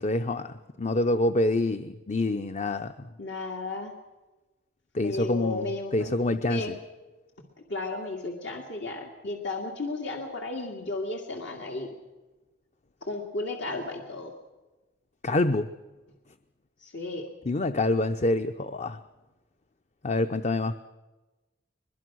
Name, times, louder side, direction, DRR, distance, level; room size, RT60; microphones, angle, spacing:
voice 1, 0.0-3.1 4.9-6.8 15.2-15.7 17.4-19.0 20.0-20.8, left 2 dB, 40° left, 10 dB, 0.7 m, -26 dB
voice 2, 3.2-3.9 5.0-6.1 6.4-6.7 7.7-11.9 13.0-14.3 16.8-17.2, left 2 dB, 75° left, 2 dB, 2.5 m, -34 dB
22.5 x 22.0 x 6.3 m, 1.1 s
head